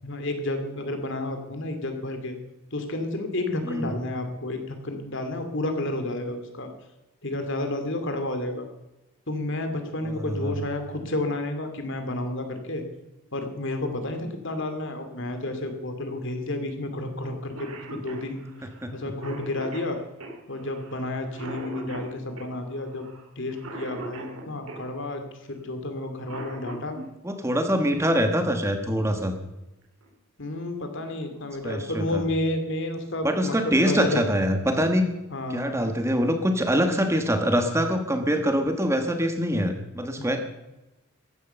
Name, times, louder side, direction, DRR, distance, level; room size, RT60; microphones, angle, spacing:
voice 1, 0.0-2.3 2.7-6.7 7.2-8.7 9.3-12.8 13.3-18.4 18.9-20.0 20.5-23.1 23.4-27.0 30.4-34.2 35.3-35.8 40.2-40.4, left 2 dB, 60° left, 6 dB, 2.5 m, -31 dB
voice 2, 3.6-4.0 10.0-10.6 18.8-18.9 27.2-29.3 31.6-32.2 33.2-35.1 35.5-40.4, equal, 15° right, 6 dB, 1.3 m, -24 dB
Cough, 17.2-17.3 17.6-24.9 26.0-27.1 28.7-28.8 29.8-30.1 30.6-30.7 31.0-31.5, right 2 dB, 80° right, 4.0 m, -40 dB
15.0 x 11.0 x 6.9 m, 0.98 s
head